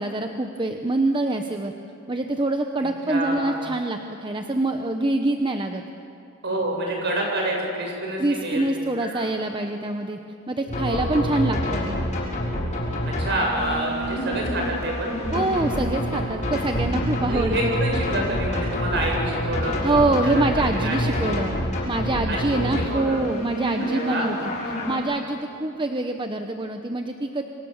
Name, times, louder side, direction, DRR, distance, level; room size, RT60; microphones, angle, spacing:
voice 1, 0.0-1.7 2.1-5.8 8.2-10.2 10.5-12.0 15.3-17.8 19.8-21.5 21.9-24.5 24.9-27.4, right 2 dB, 20° right, 5 dB, 0.9 m, -25 dB
voice 2, 2.8-3.6 6.4-8.6 9.1-9.3 10.9-11.4 13.2-15.2 17.3-21.4 22.3-23.2 23.8-24.3, right 1 dB, 50° right, 0 dB, 7.3 m, -28 dB
sound 1, 10.7-25.0, left 1 dB, 35° left, 6.4 m, -27 dB
28.0 x 25.5 x 7.2 m, 2.9 s
head